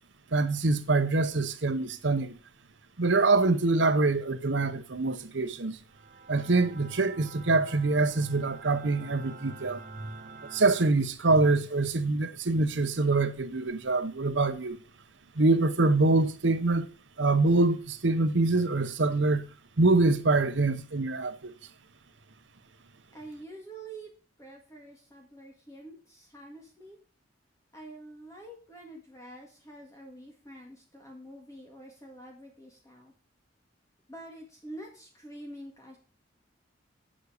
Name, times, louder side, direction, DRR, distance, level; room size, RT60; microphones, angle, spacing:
voice 1, 0.3-2.3 3.0-5.8 6.3-10.1 10.4-14.8 15.4-16.9 17.2-19.4 19.8-21.5, right 3 dB, 70° right, 0.9 m, -25 dB
sound 1, 5.9-10.9, right 4 dB, 45° right, 1.5 m, -48 dB
voice 2, 23.1-24.1 24.4-27.0 27.7-33.1 34.1-36.0, right 1 dB, 15° left, 1.9 m, -47 dB
8.1 x 7.4 x 5.0 m
head